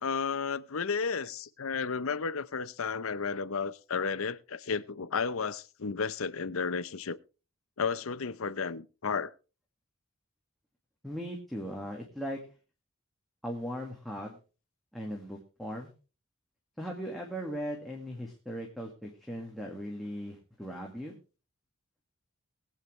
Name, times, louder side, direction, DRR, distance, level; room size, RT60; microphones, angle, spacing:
voice 1, 0.0-7.2 7.8-9.3, left 5 dB, 75° left, 0.7 m, -33 dB
voice 2, 11.0-12.4 13.4-14.4 14.9-15.9 16.8-21.2, equal, ahead, 1.9 m, -38 dB
21.5 x 8.6 x 3.2 m
head